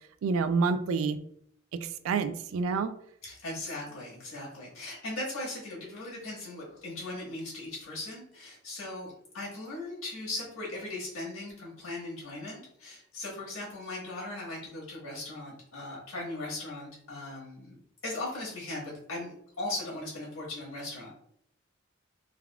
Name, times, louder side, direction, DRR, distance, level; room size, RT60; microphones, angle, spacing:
voice 1, 0.2-1.2 1.7-2.9, right 4 dB, 75° right, 10 dB, 0.3 m, -28 dB
voice 2, 3.2-17.8 18.0-21.1, left 2 dB, 80° left, -4 dB, 1.4 m, -38 dB
3.4 x 2.3 x 2.2 m, 0.66 s
head